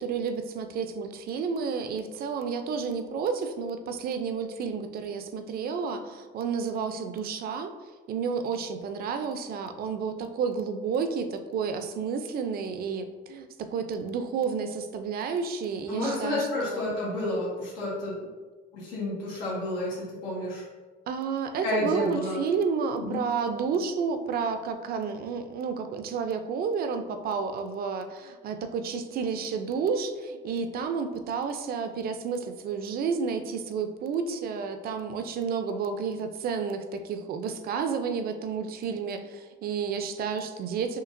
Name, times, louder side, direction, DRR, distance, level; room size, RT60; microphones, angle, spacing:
voice 1, 0.0-7.7 8.1-17.0 21.1-41.0, right 5 dB, 55° right, 8 dB, 0.4 m, -31 dB
voice 2, 15.9-18.1 18.7-20.6 21.6-22.4 23.0-23.2, left 1 dB, 90° left, -7 dB, 1.5 m, -30 dB
5.8 x 2.8 x 2.5 m, 1.4 s
cardioid pair, 130°, 19 cm